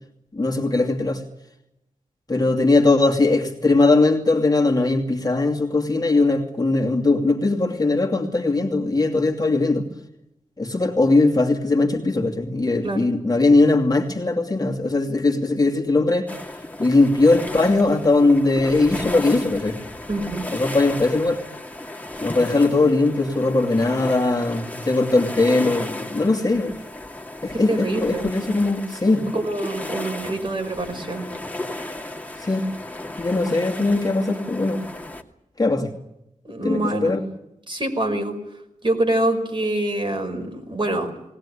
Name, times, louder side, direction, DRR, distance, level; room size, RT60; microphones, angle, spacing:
voice 1, 0.3-1.2 2.3-9.9 10.6-16.3 16.8-19.8 20.5-21.4 22.2-26.7 27.4-29.3 32.4-32.7 33.2-34.9 35.6-35.9 36.6-37.2, left 2 dB, 30° left, 1 dB, 2.6 m, -20 dB
sound 1, 16.3-35.2, left 1 dB, 10° left, 2.4 m, -34 dB
voice 2, 20.1-20.5 27.5-28.3 29.3-31.2 36.4-37.2 37.7-38.3 38.8-41.1, right 1 dB, 35° right, 3 dB, 5.2 m, -25 dB
20.5 x 19.5 x 10.0 m, 0.87 s
wide cardioid pair, 90°, 14 cm